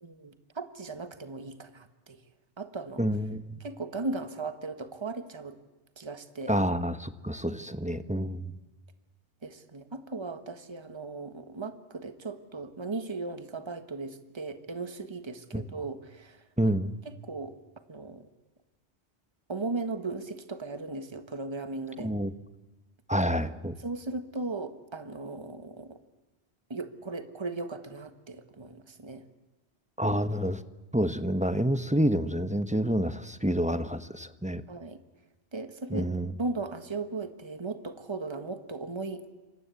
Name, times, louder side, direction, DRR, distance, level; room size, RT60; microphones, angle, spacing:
voice 1, 0.0-2.2 2.6-3.0 3.6-5.6 6.0-6.6 7.8-8.1 9.4-16.7 17.0-17.6 17.9-18.3 19.5-22.1 23.8-26.0 26.7-29.3 34.7-35.0 35.5-36.1 36.4-39.3, right 3 dB, 25° right, 9 dB, 1.5 m, -37 dB
voice 2, 3.0-3.6 6.5-8.6 15.5-15.6 16.6-16.9 22.0-22.3 23.1-23.7 30.0-30.6 30.9-34.6 35.9-36.3, equal, 5° right, 10 dB, 1.0 m, -28 dB
27.5 x 25.5 x 8.4 m, 1.1 s
omnidirectional pair, 1.1 m